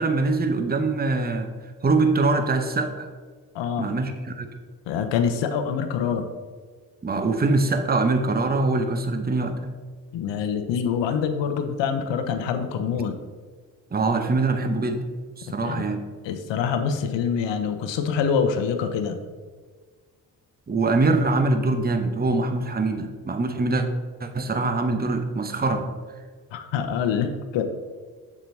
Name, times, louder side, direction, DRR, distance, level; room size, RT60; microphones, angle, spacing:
voice 1, 0.0-1.5 1.8-3.1 3.8-4.5 7.0-9.7 13.9-15.0 15.4-16.0 20.7-23.9 24.2-25.9, right 3 dB, 20° right, 7 dB, 0.9 m, -23 dB
voice 2, 3.5-3.9 4.9-6.3 10.1-13.1 15.6-15.9 16.2-19.2 26.5-27.6, left 7 dB, 70° left, 8 dB, 0.8 m, -25 dB
7.1 x 7.0 x 2.7 m, 1.5 s
hypercardioid pair, 40°, 46 cm